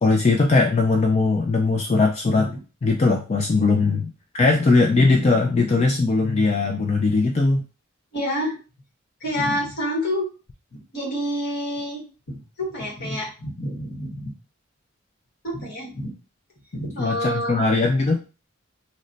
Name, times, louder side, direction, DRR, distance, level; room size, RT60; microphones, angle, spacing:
voice 1, 0.0-2.5 2.8-7.6 17.0-18.2, left 3 dB, 30° left, 2 dB, 0.4 m, -20 dB
voice 2, 8.1-8.6 9.2-10.3 10.9-14.3 15.4-16.1 16.7-17.6, equal, 55° left, -3 dB, 1.3 m, -28 dB
3.0 x 2.1 x 3.9 m, 0.34 s
head